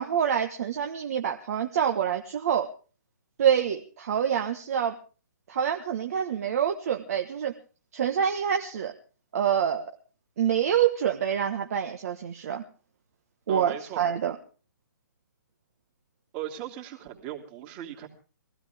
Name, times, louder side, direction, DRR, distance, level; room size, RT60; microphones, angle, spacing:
voice 1, 0.0-2.7 3.4-4.9 5.5-7.5 7.9-8.9 9.3-9.9 10.4-12.6 13.5-14.3, right 8 dB, 50° right, 4 dB, 1.4 m, -26 dB
voice 2, 13.5-14.0 16.3-18.1, right 12 dB, 30° right, 3 dB, 3.0 m, -38 dB
22.0 x 16.0 x 3.6 m, 0.37 s
figure-of-eight pair, 135°, 11 cm